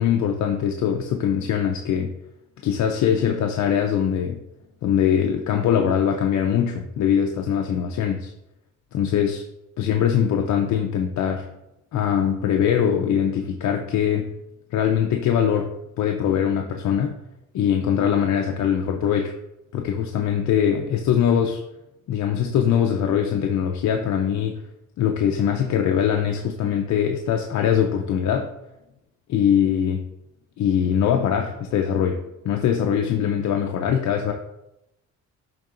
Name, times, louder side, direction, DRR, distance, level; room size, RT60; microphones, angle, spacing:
voice 1, 0.0-2.1 2.6-4.4 4.8-8.3 8.9-9.4 9.8-11.5 11.9-14.3 14.7-17.2 17.5-19.3 19.7-21.6 22.1-24.6 25.0-28.5 29.3-30.0 30.6-34.3, left 8 dB, 70° left, 3 dB, 0.6 m, -22 dB
10.5 x 3.7 x 2.5 m, 0.88 s
cardioid pair, 90°, 30 cm